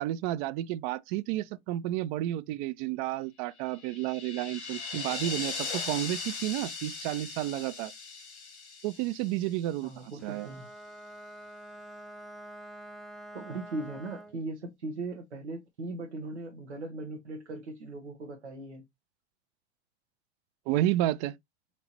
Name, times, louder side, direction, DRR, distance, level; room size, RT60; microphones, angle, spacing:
voice 1, 0.0-7.9 8.8-10.5 20.7-21.3, right 14 dB, 45° right, 0.5 m, -31 dB
sound 1, 3.7-9.9, left 4 dB, 80° left, 1.5 m, -39 dB
voice 2, 9.8-10.7 13.3-18.8, right 2 dB, 90° right, 0.9 m, -39 dB
Bowed string instrument, 10.2-14.5, right 1 dB, ahead, 0.6 m, -47 dB
4.5 x 2.8 x 2.8 m
hypercardioid pair, 90°, 33 cm